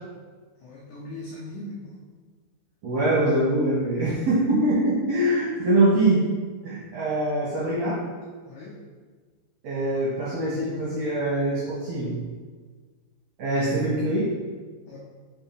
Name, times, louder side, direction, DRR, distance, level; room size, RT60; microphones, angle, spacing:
voice 1, 0.6-2.0 4.0-4.1 8.4-8.7 14.9-15.0, left 2 dB, 85° left, -5 dB, 1.6 m, -39 dB
voice 2, 2.8-6.2 6.6-8.0 9.6-12.2 13.4-14.3, right 1 dB, 65° right, -7 dB, 1.7 m, -23 dB
5.6 x 4.3 x 4.1 m, 1.5 s
omnidirectional pair, 4.5 m